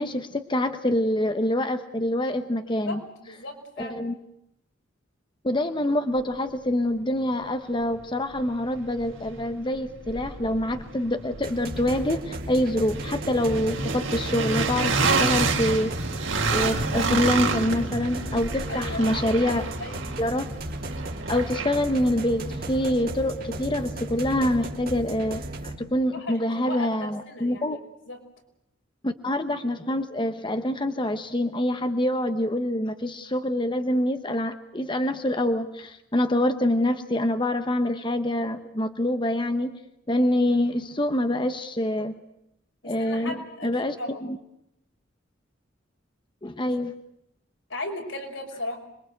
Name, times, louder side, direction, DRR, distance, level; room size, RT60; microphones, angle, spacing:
voice 1, 0.0-3.0 3.8-4.1 5.4-16.1 16.5-19.7 20.2-20.5 21.3-27.8 29.0-39.7 40.1-42.2 42.8-43.3 43.6-43.9 46.4-46.9, left 1 dB, 25° left, 8 dB, 1.0 m, -26 dB
voice 2, 2.8-4.0 18.7-19.0 19.4-19.5 19.8-20.0 26.1-27.8 28.1-28.2 42.8-43.7 44.0-44.2 46.7-46.8 47.7-48.8, left 2 dB, 80° left, 2 dB, 5.7 m, -36 dB
sound 1, 7.4-7.5 8.0-23.9, right 4 dB, 80° right, 3.8 m, -30 dB
sound 2, 11.4-25.7, right 1 dB, 50° right, 2.9 m, -35 dB
26.5 x 22.5 x 7.9 m, 0.80 s
head